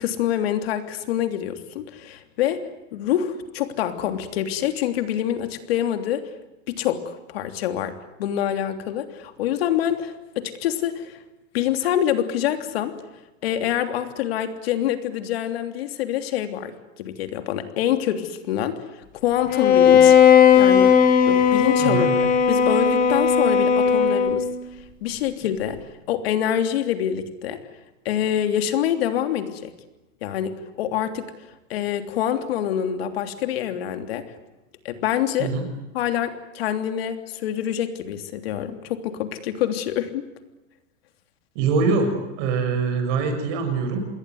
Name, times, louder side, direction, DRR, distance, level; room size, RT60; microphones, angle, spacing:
voice 1, 0.0-6.2 6.7-11.2 11.5-12.9 13.4-20.2 20.6-21.0 21.3-24.5 25.0-25.8 26.1-27.7 28.0-29.7 30.2-31.3 31.7-34.2 34.8-35.5 35.9-40.2, left 10 dB, 50° left, 8 dB, 3.2 m, -26 dB
Bowed string instrument, 19.5-24.6, left 7 dB, 20° left, 1.9 m, -16 dB
voice 2, 21.8-22.1 35.4-35.7 41.5-44.1, right 4 dB, 35° right, 5 dB, 6.5 m, -23 dB
28.0 x 21.5 x 9.6 m, 1.0 s
supercardioid pair, 175°, 37 cm